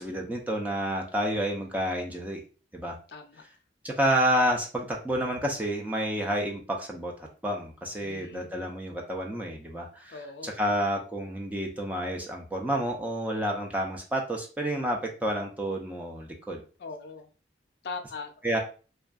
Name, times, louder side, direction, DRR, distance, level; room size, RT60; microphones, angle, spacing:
voice 1, 0.0-2.4 2.7-3.0 3.8-10.2 10.4-16.6 18.4-18.6, equal, 10° right, 0 dB, 0.4 m, -29 dB
voice 2, 3.1-3.4 8.0-8.5 10.1-10.5 16.8-17.3 17.8-18.6, left 4 dB, 60° left, 6 dB, 0.4 m, -40 dB
2.6 x 2.3 x 2.3 m, 0.37 s
head